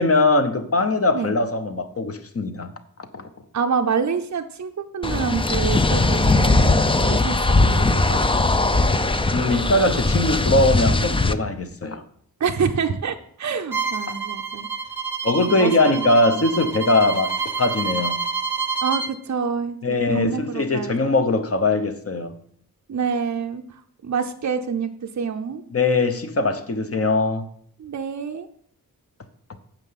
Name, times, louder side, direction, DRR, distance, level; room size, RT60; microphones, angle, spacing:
voice 1, 0.0-2.7 3.1-3.3 8.1-8.2 9.3-12.0 15.2-18.2 19.8-22.3 25.7-27.5, left 2 dB, 40° left, 1.0 m, -21 dB
voice 2, 3.5-8.5 12.4-14.7 15.4-16.4 18.8-20.9 22.9-24.9 25.2-25.6 27.8-28.5, right 6 dB, 50° right, 0.6 m, -27 dB
sound 1, 5.0-11.3, left 2 dB, 15° left, 0.4 m, -19 dB
Bowed string instrument, 13.7-19.1, right 5 dB, 5° right, 0.8 m, -28 dB
9.0 x 6.8 x 5.7 m
wide cardioid pair, 140°, 36 cm